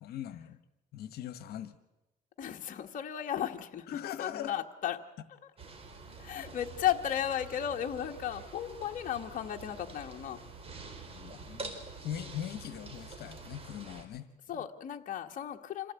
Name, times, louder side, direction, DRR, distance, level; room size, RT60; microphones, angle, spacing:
voice 1, 0.0-0.6 0.9-1.7 3.9-4.5 6.3-6.4 11.1-14.3, left 10 dB, 70° left, 12 dB, 1.5 m, -40 dB
voice 2, 2.4-5.0 5.4-5.5 6.2-10.4 14.5-15.9, left 10 dB, 50° left, 3 dB, 1.4 m, -35 dB
sound 1, 5.6-14.0, right 3 dB, 35° right, 3.9 m, -47 dB
26.5 x 16.0 x 8.3 m, 1.0 s
cardioid pair, 110°, 17 cm